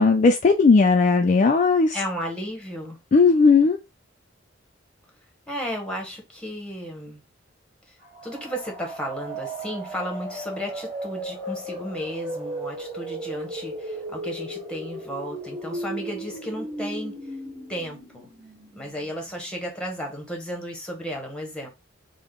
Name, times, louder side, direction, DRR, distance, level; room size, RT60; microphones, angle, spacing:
voice 1, 0.0-2.0 3.1-3.8, left 4 dB, 40° left, 0.3 m, -17 dB
voice 2, 1.9-3.0 5.5-7.2 7.9-8.0 8.2-17.2 17.7-18.3 18.7-21.7, equal, 5° left, 1.0 m, -34 dB
sound 1, 8.0-19.7, right 1 dB, 35° right, 1.7 m, -36 dB
3.6 x 2.1 x 3.6 m
head